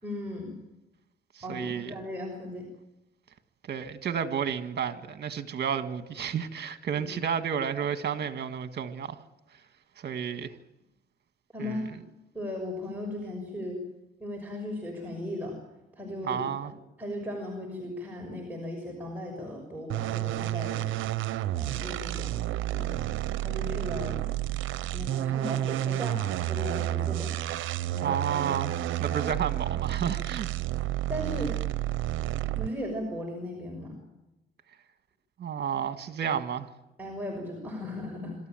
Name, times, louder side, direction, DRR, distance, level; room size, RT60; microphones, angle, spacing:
voice 1, 0.0-0.6 1.4-2.7 6.9-7.1 11.5-12.0 12.3-13.8 14.2-15.6 15.9-16.7 17.0-20.9 21.5-22.3 22.6-23.1 23.4-24.2 24.9-27.3 28.0-28.2 31.1-31.5 32.5-34.0 37.0-38.4, left 1 dB, 10° right, 6.2 m, -37 dB
voice 2, 1.3-2.0 3.6-9.2 10.0-10.5 11.6-11.9 16.2-16.7 28.0-30.5 35.4-36.7, right 8 dB, 55° right, 1.8 m, -31 dB
sound 1, 19.9-32.9, right 14 dB, 80° right, 0.8 m, -30 dB
26.5 x 13.5 x 9.2 m
cardioid pair, 90°, 20 cm